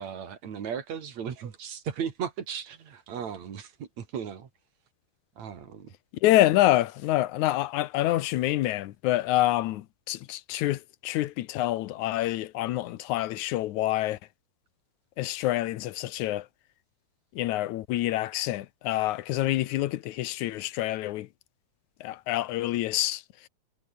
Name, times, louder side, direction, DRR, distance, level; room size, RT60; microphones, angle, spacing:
voice 1, 0.0-4.5 5.4-5.9, right 7 dB, 70° right, 3.7 m, -36 dB
voice 2, 6.2-14.2 15.2-16.5 17.4-21.3 22.0-23.5, left 15 dB, 80° left, 2.3 m, -27 dB
omnidirectional pair, 3.4 m